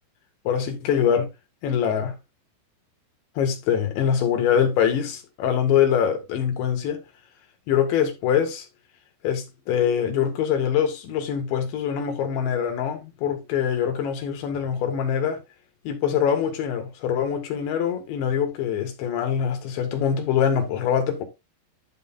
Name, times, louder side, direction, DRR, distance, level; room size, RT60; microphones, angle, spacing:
voice 1, 0.5-1.3 1.6-2.2 3.4-7.0 7.7-8.7 9.2-15.4 15.9-21.2, left 8 dB, 65° left, 3.8 m, -24 dB
12.0 x 6.7 x 2.6 m
omnidirectional pair, 6.0 m